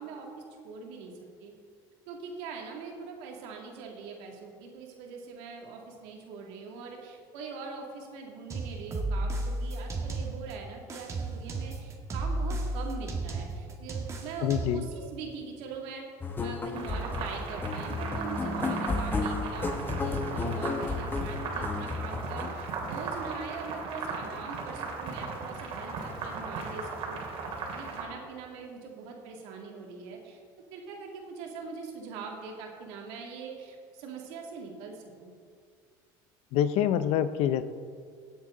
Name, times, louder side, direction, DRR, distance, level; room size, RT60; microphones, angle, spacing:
voice 1, 0.0-1.5 2.1-16.1 16.4-27.2 27.7-30.4 30.7-35.3, right 5 dB, 80° right, 0 dB, 2.4 m, -42 dB
sound 1, 8.5-10.5 10.9-14.9, right 2 dB, 30° right, 1.9 m, -33 dB
voice 2, 14.4-14.8 36.5-37.6, left 10 dB, 70° left, 13 dB, 0.7 m, -26 dB
sound 2, 16.2-22.5, left 3 dB, 20° left, 1.1 m, -33 dB
sound 3, 16.7-28.0, right 4 dB, 60° right, 2.8 m, -37 dB
17.0 x 8.0 x 3.9 m, 2.1 s
supercardioid pair, 105°, 11 cm